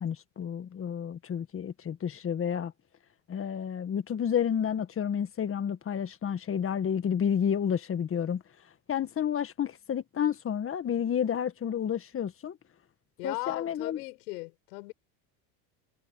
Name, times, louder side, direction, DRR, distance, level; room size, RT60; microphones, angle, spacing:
voice 1, 0.0-2.7 3.3-8.4 8.9-12.6 13.2-14.0, left 8 dB, 25° left, 1.7 m, -30 dB
voice 2, 13.2-14.9, left 25 dB, 75° left, 7.7 m, -37 dB
supercardioid pair, 115°, 47 cm